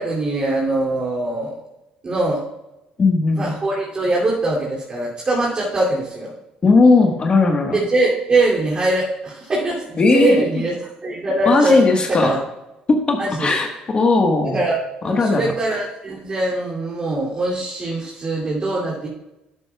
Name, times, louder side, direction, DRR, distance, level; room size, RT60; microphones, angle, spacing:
voice 1, 0.0-1.6 2.0-2.4 3.3-6.3 7.7-10.7 11.0-12.4 13.2-13.5 14.4-14.8 15.0-19.1, right 2 dB, 35° right, -5 dB, 2.7 m, -22 dB
voice 2, 3.0-3.5 6.6-7.8 10.0-10.4 11.4-12.4 12.9-13.7 13.9-14.6 15.0-15.5, left 3 dB, 40° left, 3 dB, 1.4 m, -17 dB
11.5 x 9.5 x 2.3 m, 0.93 s
supercardioid pair, 80°, 3 cm